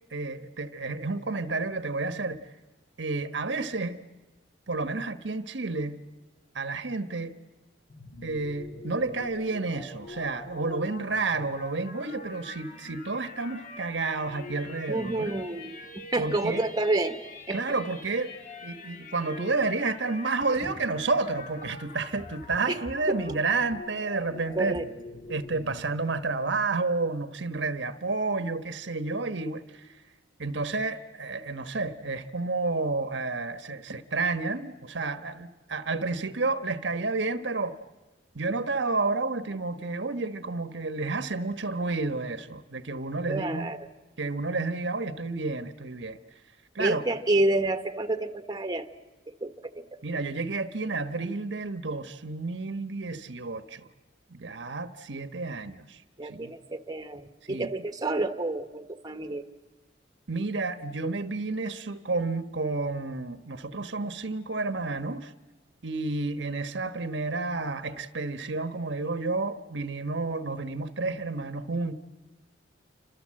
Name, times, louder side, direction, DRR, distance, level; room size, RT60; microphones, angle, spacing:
voice 1, 0.1-2.5 3.0-4.0 4.7-6.0 6.5-7.4 8.2-15.3 16.2-16.6 17.5-18.3 18.6-24.8 25.3-30.0 30.4-37.8 38.3-43.7 44.2-46.2 46.7-47.0 50.0-53.9 54.3-56.5 57.5-57.7 60.3-65.3 65.8-71.9, right 3 dB, 70° right, 1.2 m, -30 dB
sound 1, 7.9-26.0, left 3 dB, 45° left, 2.5 m, -45 dB
voice 2, 14.9-17.2 17.5-17.7 20.6-20.7 22.7-22.8 23.1-23.2 24.5-24.9 43.3-43.9 46.8-48.9 49.3-49.8 56.2-59.4, right 2 dB, 20° right, 1.3 m, -29 dB
29.0 x 26.0 x 7.6 m
head